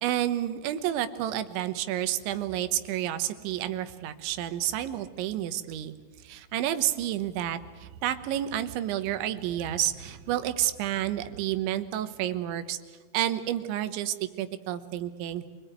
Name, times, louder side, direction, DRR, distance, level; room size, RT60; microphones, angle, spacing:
voice 1, 0.0-5.9 6.2-12.8 13.1-15.4, right 12 dB, 85° right, 11 dB, 3.4 m, -30 dB
26.5 x 20.0 x 9.0 m, 1.4 s
omnidirectional pair, 5.2 m